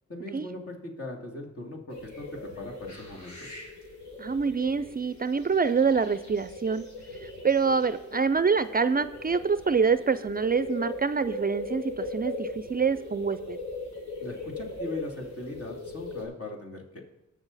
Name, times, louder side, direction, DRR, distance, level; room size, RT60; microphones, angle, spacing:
voice 1, 0.1-3.6 14.2-17.0, left 2 dB, 55° left, 1 dB, 2.8 m, -39 dB
sound 1, 1.9-16.2, left 2 dB, 80° left, 3.9 m, -39 dB
voice 2, 4.2-6.9 7.2-13.6, right 5 dB, 30° right, 14 dB, 0.4 m, -26 dB
19.0 x 6.4 x 4.1 m, 1.0 s
cardioid pair, 65°, 29 cm